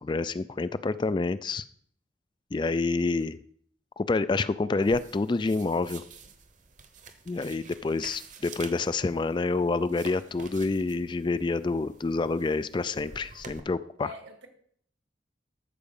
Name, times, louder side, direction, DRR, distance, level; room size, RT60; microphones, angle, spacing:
voice 1, 0.0-1.6 2.5-3.4 4.0-6.0 7.3-14.1, left 3 dB, 25° left, 15 dB, 0.3 m, -28 dB
sound 1, 4.8-13.6, right 5 dB, 40° right, 1.0 m, -49 dB
voice 2, 14.0-14.5, left 1 dB, 75° right, 5 dB, 1.9 m, -45 dB
13.5 x 4.8 x 7.0 m, 0.63 s
head